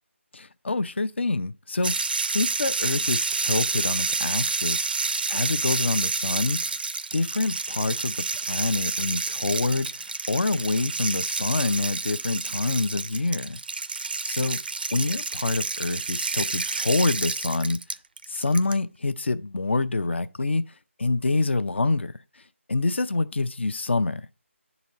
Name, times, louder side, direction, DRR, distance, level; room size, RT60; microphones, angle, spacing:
voice 1, 0.3-2.0 2.3-4.9 5.3-6.6 7.1-13.6 14.2-14.6 14.9-17.8 18.3-20.6 21.0-22.1 22.7-24.3, left 3 dB, 60° left, 0.5 m, -26 dB
sound 1, 1.8-18.7, right 4 dB, 45° right, 0.4 m, -29 dB
10.5 x 4.1 x 2.9 m
figure-of-eight pair, 160°, 7 cm